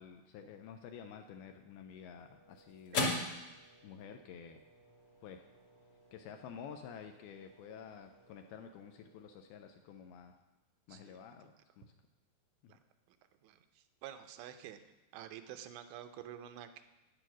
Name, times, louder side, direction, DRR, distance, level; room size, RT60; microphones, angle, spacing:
voice 1, 0.0-3.5 3.8-4.6 5.2-5.4 6.1-10.4 10.9-11.9 12.6-12.8, left 7 dB, 80° left, 6 dB, 2.3 m, -51 dB
sound 1, 1.7-10.2, left 2 dB, 45° left, 2.0 m, -43 dB
voice 2, 13.4-14.8 15.1-16.8, right 10 dB, 90° right, 7 dB, 3.0 m, -49 dB
9.7 x 8.9 x 6.1 m, 1.1 s
omnidirectional pair, 4.9 m